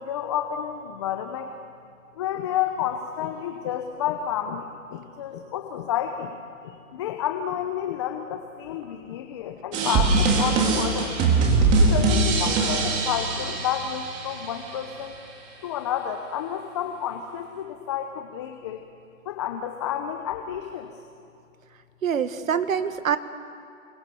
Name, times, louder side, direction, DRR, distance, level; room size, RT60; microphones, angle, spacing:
voice 1, 0.0-1.5 2.2-11.3 11.8-15.2 15.6-18.8 19.2-20.9, left 9 dB, 20° left, 6 dB, 0.8 m, -30 dB
sound 1, 9.7-14.7, right 3 dB, 15° right, 2.6 m, -22 dB
voice 2, 22.0-23.2, right 7 dB, 70° right, 11 dB, 1.7 m, -25 dB
28.0 x 22.5 x 6.9 m, 2.4 s
hypercardioid pair, 160°, 42 cm